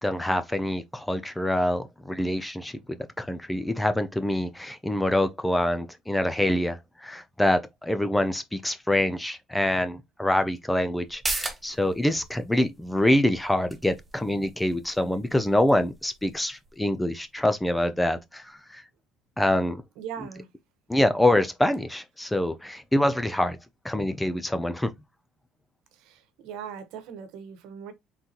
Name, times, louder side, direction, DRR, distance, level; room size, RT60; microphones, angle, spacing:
voice 1, 0.0-18.8 19.4-19.8 20.9-23.6 23.8-24.9, left 1 dB, 5° left, 0.5 m, -25 dB
sound 1, 11.0-18.2 18.5-18.6, right 2 dB, 10° right, 0.8 m, -39 dB
voice 2, 20.0-20.5 26.0-27.9, right 7 dB, 75° right, 1.1 m, -39 dB
4.1 x 3.8 x 2.9 m
cardioid pair, 145°, 0 cm